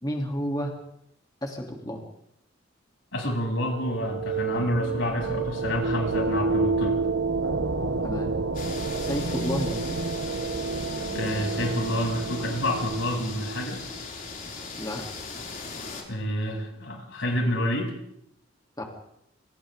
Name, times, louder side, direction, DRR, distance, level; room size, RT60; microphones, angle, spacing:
voice 1, 0.0-0.7 1.4-2.0 8.0-8.3 9.0-10.0 14.8-15.0 18.8-18.9, equal, 20° left, 0 dB, 3.3 m, -31 dB
voice 2, 3.1-7.0 11.1-13.8 16.0-18.0, left 1 dB, 90° left, -1 dB, 8.0 m, -28 dB
sound 1, 3.4-14.0, right 4 dB, 75° right, 1.2 m, -29 dB
sound 2, 8.5-16.0, left 4 dB, 45° left, 6.1 m, -39 dB
28.5 x 26.5 x 3.9 m, 0.77 s
head